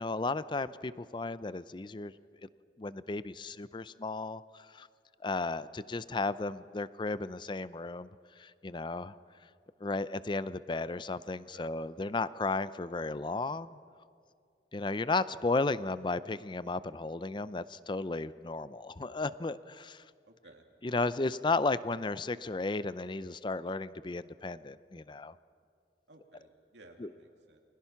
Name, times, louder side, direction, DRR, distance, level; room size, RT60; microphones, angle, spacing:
voice 1, 0.0-2.1 2.8-4.4 4.7-4.9 5.2-8.1 8.4-9.1 9.8-13.7 14.7-20.0 20.8-25.3 27.0-27.1, left 3 dB, 25° left, 16 dB, 0.5 m, -34 dB
voice 2, 11.3-11.7 20.3-20.6 26.1-27.6, right 2 dB, 90° right, 2 dB, 2.8 m, -57 dB
29.5 x 22.0 x 5.8 m, 2.2 s
head